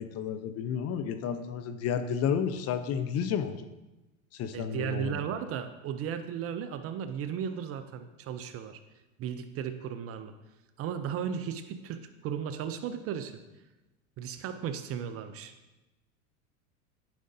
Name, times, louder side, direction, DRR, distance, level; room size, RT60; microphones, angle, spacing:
voice 1, 0.0-3.7 4.3-5.2, left 7 dB, 40° left, 10 dB, 0.5 m, -31 dB
voice 2, 4.5-8.8 9.2-10.3 10.8-13.4 14.2-15.5, right 8 dB, 35° right, 10 dB, 0.5 m, -35 dB
10.5 x 5.1 x 2.6 m, 1.0 s
hypercardioid pair, 95°, 41 cm